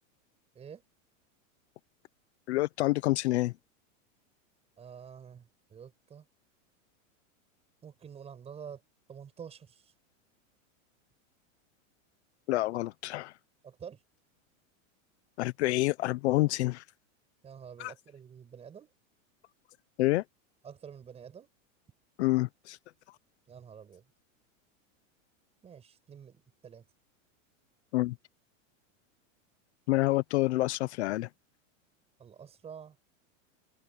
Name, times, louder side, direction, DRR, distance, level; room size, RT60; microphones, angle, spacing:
voice 1, 2.5-3.5 12.5-13.3 15.4-16.8 17.8-17.9 20.0-20.2 22.2-22.8 27.9-28.2 29.9-31.3, left 19 dB, 55° left, 0.7 m, -28 dB
voice 2, 4.8-6.2 7.8-8.8 9.1-9.9 13.6-14.0 17.4-18.9 20.6-21.5 23.5-24.0 25.6-26.9 32.2-33.0, right 7 dB, 15° right, 6.6 m, -48 dB
supercardioid pair, 170°, 40 cm